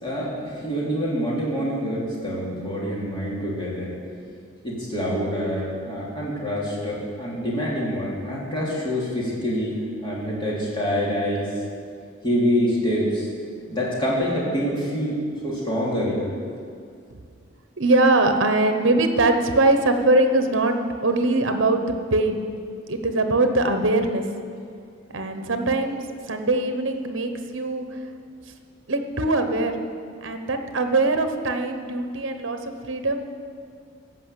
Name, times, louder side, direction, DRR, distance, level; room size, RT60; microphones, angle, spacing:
voice 1, 0.0-4.0 4.6-11.5 12.2-13.3 13.7-16.3, equal, 25° left, -6 dB, 3.0 m, -26 dB
voice 2, 17.8-20.8 21.0-22.4 22.9-24.2 25.1-28.0 28.9-29.8 30.2-33.2, right 2 dB, 65° right, 6 dB, 1.0 m, -22 dB
15.0 x 5.6 x 8.3 m, 2.3 s
head